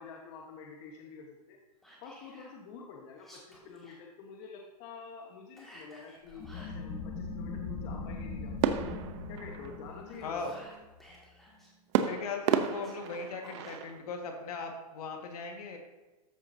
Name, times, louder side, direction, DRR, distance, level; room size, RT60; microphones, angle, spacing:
voice 1, 0.0-1.6 2.0-8.9 9.3-10.5, left 5 dB, 40° left, 0 dB, 1.2 m, -48 dB
Whispering, 1.8-2.5 3.1-4.0 5.5-6.8 9.9-11.7 12.5-13.8, equal, ahead, 2.1 m, -55 dB
sound 1, 6.3-11.6, left 3 dB, 20° left, 1.2 m, -40 dB
sound 2, 8.6-10.2 11.9-14.0, right 9 dB, 45° right, 0.7 m, -32 dB
voice 2, 10.2-10.6 12.0-15.8, left 4 dB, 65° left, 3 dB, 1.7 m, -38 dB
13.5 x 5.8 x 2.7 m, 1.1 s
hypercardioid pair, 140°, 21 cm